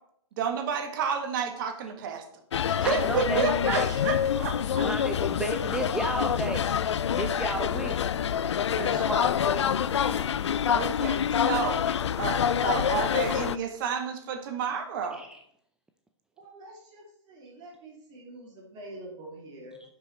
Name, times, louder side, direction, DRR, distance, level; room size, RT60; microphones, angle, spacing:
voice 1, 0.4-2.2 2.7-4.9 8.7-9.3 10.4-15.2, right 6 dB, 45° right, 6 dB, 1.5 m, -31 dB
sound 1, 2.5-13.6, left 8 dB, 70° left, 0.4 m, -26 dB
voice 2, 2.7-3.9 4.8-6.7 7.1-8.0 8.9-9.7 15.1-15.4, right 2 dB, 5° right, 4 dB, 0.5 m, -33 dB
sound 2, 9.8-10.4 12.3-13.5, left 3 dB, 15° left, 1.1 m, -47 dB
voice 3, 16.4-19.8, right 1 dB, 30° right, -2 dB, 2.9 m, -46 dB
10.0 x 5.9 x 4.3 m, 0.70 s
figure-of-eight pair, 120°, 15 cm